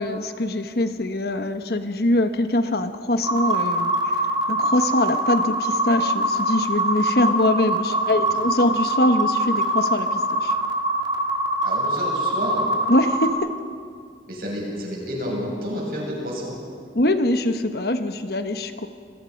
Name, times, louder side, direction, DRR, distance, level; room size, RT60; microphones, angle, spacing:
voice 1, 0.0-4.2 4.5-10.6 12.9-13.6 16.9-18.9, left 1 dB, 55° left, 8 dB, 1.1 m, -23 dB
sound 1, 3.2-13.3, right 1 dB, 25° right, 2.1 m, -23 dB
voice 2, 11.6-12.7 14.3-16.6, equal, 50° right, -2 dB, 7.1 m, -30 dB
29.0 x 21.0 x 5.3 m, 2.1 s
head